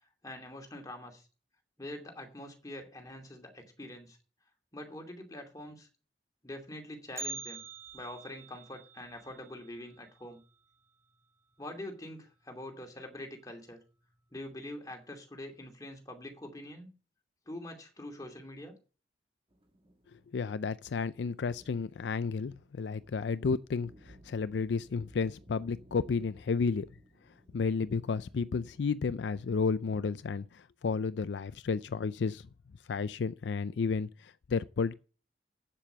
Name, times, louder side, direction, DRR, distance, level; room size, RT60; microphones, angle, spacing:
voice 1, 0.2-1.3 1.8-4.2 4.7-5.9 6.4-7.6 7.9-10.4 11.6-13.8 14.3-16.9 17.5-18.7, left 1 dB, 20° left, 2.7 m, -44 dB
Bell, 7.2-11.2 11.5-11.6 12.1-12.2 13.0-13.1 13.9-14.1 14.5-14.6, right 3 dB, 15° right, 1.9 m, -46 dB
sound 1, 19.5-29.0, equal, 30° right, 1.5 m, -59 dB
voice 2, 20.3-26.9 27.5-32.5 32.9-34.9, left 5 dB, 75° left, 0.4 m, -32 dB
8.5 x 7.5 x 6.8 m
head